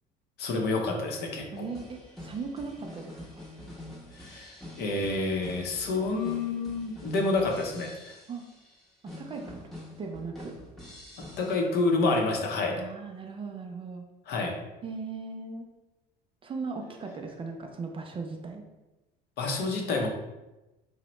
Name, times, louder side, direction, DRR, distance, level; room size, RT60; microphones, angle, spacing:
voice 1, 0.4-1.7 4.1-8.1 11.4-12.8 14.3-14.5 19.4-20.1, left 3 dB, 60° left, 1 dB, 0.6 m, -28 dB
voice 2, 1.5-3.5 8.3-8.4 9.0-9.6 10.0-10.5 12.7-14.0 14.8-15.7 16.4-18.6, right 4 dB, 30° right, 3 dB, 0.4 m, -38 dB
sound 1, 1.6-11.6, left 1 dB, ahead, 0.7 m, -46 dB
2.8 x 2.1 x 3.0 m, 1.0 s
supercardioid pair, 85°, 19 cm